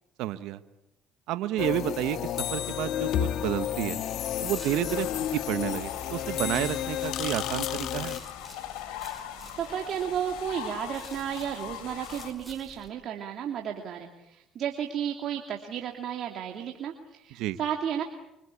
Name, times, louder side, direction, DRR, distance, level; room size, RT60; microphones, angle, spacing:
voice 1, 0.2-0.6 1.3-2.2 2.5-4.0 4.4-8.2 17.4-17.6, right 14 dB, 80° right, 11 dB, 1.2 m, -30 dB
sound 1, 1.6-8.2, left 11 dB, 70° left, 1.3 m, -31 dB
sound 2, 4.3-12.9, right 1 dB, ahead, 5.3 m, -50 dB
sound 3, 4.9-12.3, left 11 dB, 85° left, 3.3 m, -41 dB
voice 2, 9.5-18.0, right 9 dB, 60° right, 3 dB, 2.7 m, -33 dB
26.0 x 25.0 x 8.5 m, 0.89 s
supercardioid pair, 90°, 0 cm